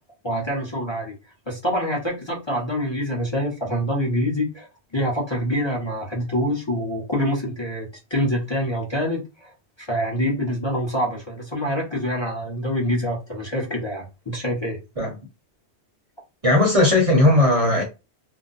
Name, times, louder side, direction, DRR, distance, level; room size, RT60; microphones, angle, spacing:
voice 1, 0.2-1.2 1.5-4.7 4.9-14.8, equal, 25° left, 0.8 m, -26 dB
voice 2, 16.4-17.8, left 2 dB, 35° right, 0.9 m, -17 dB
2.6 x 2.1 x 3.9 m
omnidirectional pair, 1.1 m